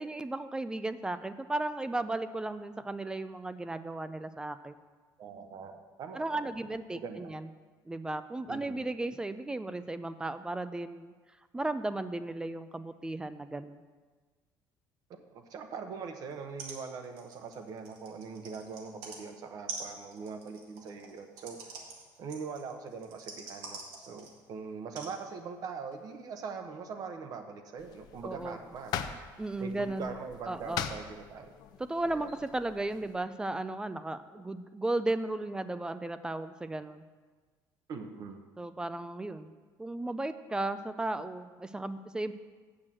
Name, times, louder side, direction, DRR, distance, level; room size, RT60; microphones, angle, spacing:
voice 1, 0.0-4.8 6.2-7.5 7.9-11.1 11.5-13.8 28.2-28.6 29.4-30.1 30.5-30.9 31.9-37.0 38.6-39.5 39.8-42.3, right 2 dB, 10° right, 12 dB, 0.3 m, -35 dB
voice 2, 5.2-7.3 8.5-8.8 15.1-21.7 22.2-29.1 29.6-31.5 32.0-32.3 37.9-38.4, right 5 dB, 50° right, 6 dB, 1.0 m, -42 dB
sound 1, 16.3-16.4 16.6-16.8 17.0-19.2 19.7-24.4 24.9-25.1 25.9-26.0, right 4 dB, 90° right, 1.9 m, -45 dB
sound 2, 27.8-33.2, left 8 dB, 55° left, 0.6 m, -42 dB
7.5 x 6.3 x 7.5 m, 1.4 s
cardioid pair, 140°, 8 cm